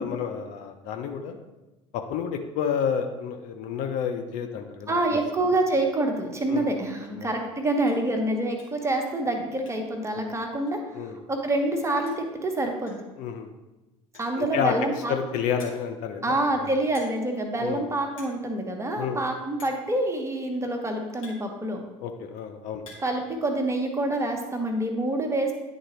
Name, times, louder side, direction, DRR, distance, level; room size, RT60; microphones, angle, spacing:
voice 1, 0.0-1.4 1.9-5.0 6.5-6.7 7.2-7.3 10.9-11.2 13.2-13.5 14.4-14.7 15.1-16.7 17.6-17.9 19.0-19.2 22.0-22.8, left 7 dB, 50° left, 5 dB, 0.6 m, -30 dB
voice 2, 4.9-13.0 14.2-15.2 16.2-21.8 23.0-25.5, right 1 dB, 15° right, 3 dB, 1.1 m, -27 dB
sound 1, 7.9-8.1 8.6-8.9 9.2-10.0 10.3-10.4 10.7-10.8 11.8-11.9 12.1-12.4 12.9-13.2 14.0-14.5 15.0-15.1 15.6-16.1 16.9-17.4 17.6-17.8 18.1-18.4 18.7-18.8 19.6-19.9 20.7-22.0 22.5-23.2 23.5-24.2, left 2 dB, 75° left, 1.6 m, -50 dB
10.0 x 3.8 x 3.1 m, 1.1 s
figure-of-eight pair, 65°, 17 cm